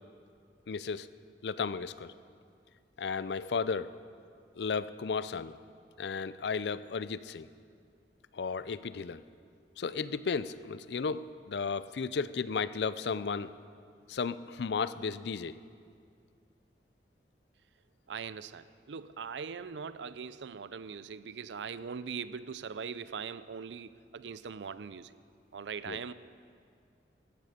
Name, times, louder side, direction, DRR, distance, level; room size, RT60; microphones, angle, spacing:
voice 1, 0.7-1.1 1.4-2.1 3.0-3.9 4.6-5.6 6.0-7.5 8.3-9.2 9.8-13.5 14.1-15.5 25.9-26.0, left 5 dB, 70° left, 15 dB, 0.5 m, -34 dB
voice 2, 18.1-25.2 25.5-26.1, right 6 dB, 90° right, 15 dB, 0.5 m, -41 dB
16.5 x 14.0 x 5.1 m, 2.3 s
head